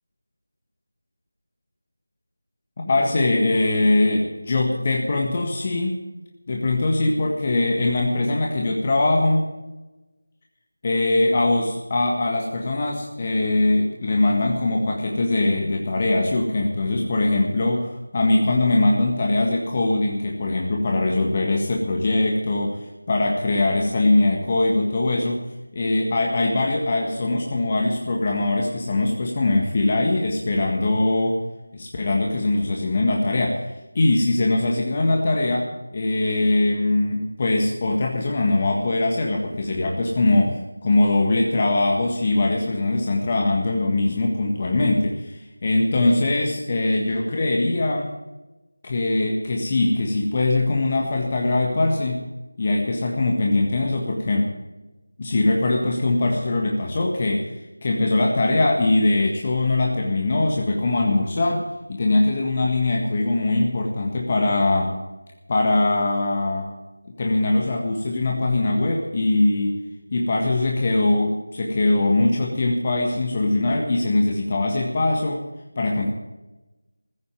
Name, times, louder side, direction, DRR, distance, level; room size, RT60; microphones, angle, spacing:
voice 1, 2.9-6.0 6.5-9.5 10.8-25.4 25.7-31.4 31.7-48.1 48.8-52.2 52.6-54.5 55.2-65.0 65.5-66.7 67.2-69.8 70.1-75.4 75.8-76.1, left 2 dB, 30° left, 0 dB, 1.6 m, -22 dB
15.5 x 8.6 x 9.1 m, 1.1 s
figure-of-eight pair, 170°, 0 cm